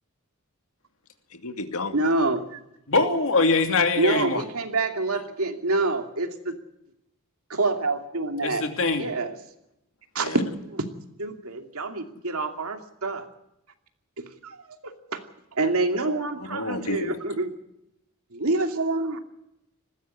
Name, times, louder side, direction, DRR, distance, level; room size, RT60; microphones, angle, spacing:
voice 1, 1.4-2.0 10.2-10.4 16.4-17.2, left 2 dB, 75° left, 8 dB, 1.9 m, -31 dB
voice 2, 1.9-2.6 4.0-6.5 7.5-8.7 9.0-9.4 10.1-10.8 11.2-13.3 14.2-14.6 14.8-15.2 15.5-17.5 18.3-19.2, right 2 dB, 75° right, 5 dB, 2.6 m, -27 dB
voice 3, 2.9-4.4 8.4-9.0, left 3 dB, 60° left, 6 dB, 2.8 m, -22 dB
20.0 x 15.5 x 9.8 m, 0.83 s
head